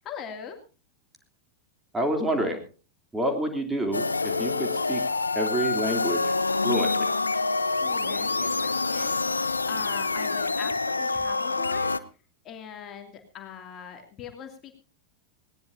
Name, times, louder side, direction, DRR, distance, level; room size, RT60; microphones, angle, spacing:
voice 1, 0.0-0.6 7.8-11.9 12.4-14.8, left 8 dB, 30° left, 4 dB, 2.5 m, -41 dB
voice 2, 1.9-2.6 3.1-5.0 5.3-6.3 6.6-7.1, right 1 dB, 10° right, 4 dB, 3.1 m, -28 dB
sound 1, 3.9-12.0, left 3 dB, 80° left, 0.7 m, -26 dB
20.0 x 18.5 x 2.7 m, 0.34 s
figure-of-eight pair, 90°, 0 cm